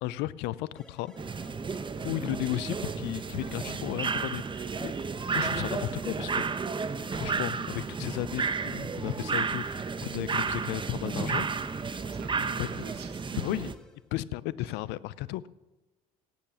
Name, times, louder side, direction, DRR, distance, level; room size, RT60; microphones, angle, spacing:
voice 1, 0.0-1.4 2.0-4.9 5.3-6.4 7.1-11.5 12.6-12.7 13.4-13.7 14.1-15.5, left 16 dB, 70° left, 19 dB, 0.6 m, -34 dB
sound 1, 0.8-14.1, equal, 5° left, 1.9 m, -55 dB
sound 2, 1.2-13.7, right 5 dB, 25° right, 1.0 m, -32 dB
voice 2, 12.0-13.5 14.6-14.7, right 7 dB, 65° right, 5 dB, 2.2 m, -44 dB
17.5 x 8.9 x 6.3 m, 1.1 s
hypercardioid pair, 65°, 18 cm